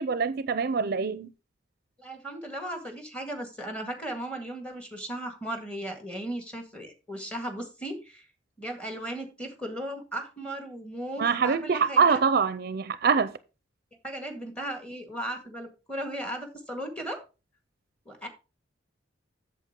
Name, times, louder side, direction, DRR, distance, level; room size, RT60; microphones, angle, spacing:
voice 1, 0.0-1.3 11.2-13.3, right 5 dB, 55° right, 0.5 m, -24 dB
voice 2, 2.0-8.2 8.6-12.2 14.0-17.2 18.0-18.3, right 1 dB, 5° left, 1.7 m, -36 dB
8.2 x 7.1 x 3.7 m
head